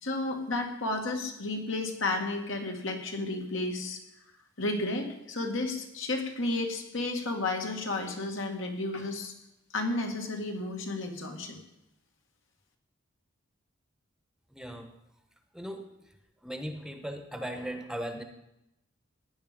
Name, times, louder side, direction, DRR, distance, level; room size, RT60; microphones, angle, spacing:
voice 1, 0.0-4.0 4.6-9.3 9.7-11.6, left 2 dB, 70° left, 3 dB, 2.0 m, -32 dB
voice 2, 14.5-14.9 15.5-16.2 16.4-18.2, equal, 5° right, 6 dB, 0.9 m, -38 dB
15.5 x 10.0 x 5.2 m, 0.87 s
head